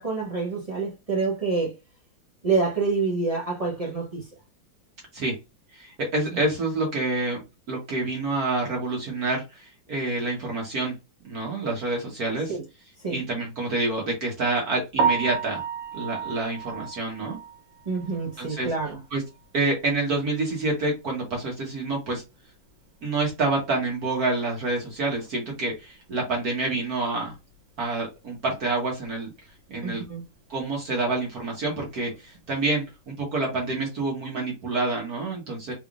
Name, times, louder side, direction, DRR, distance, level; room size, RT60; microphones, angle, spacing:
voice 1, 0.0-1.7 2.4-4.2 6.3-6.4 12.5-12.6 13.0-13.2 17.9-19.0 29.8-30.2, right 4 dB, 35° right, 0.5 m, -27 dB
voice 2, 5.7-7.4 7.7-10.9 11.2-12.6 13.1-15.6 15.9-17.4 18.4-18.7 19.1-19.2 19.5-22.2 23.0-27.3 27.8-29.3 29.7-30.0 30.5-35.7, right 2 dB, 55° right, 1.4 m, -27 dB
Piano, 15.0-18.9 19.3-19.4 19.9-20.0 20.4-20.5 23.6-23.7 32.1-32.4, right 6 dB, 80° right, 1.4 m, -30 dB
3.6 x 3.4 x 2.4 m
omnidirectional pair, 2.1 m